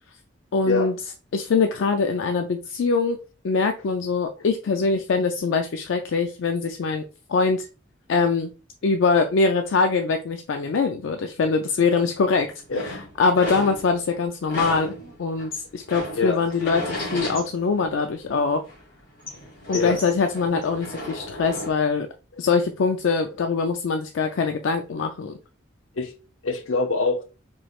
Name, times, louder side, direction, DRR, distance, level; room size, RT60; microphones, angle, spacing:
voice 1, 0.5-1.0 1.3-3.2 3.4-7.0 7.3-7.7 8.1-8.5 8.8-12.5 12.7-18.6 19.7-22.1 22.4-25.3, left 4 dB, 70° left, 0.4 m, -23 dB
sound 1, 12.3-14.1 14.5-18.3 18.6-21.7, left 1 dB, 45° left, 2.0 m, -34 dB
voice 2, 26.4-27.3, left 4 dB, 85° left, 0.8 m, -24 dB
4.3 x 3.1 x 2.4 m
head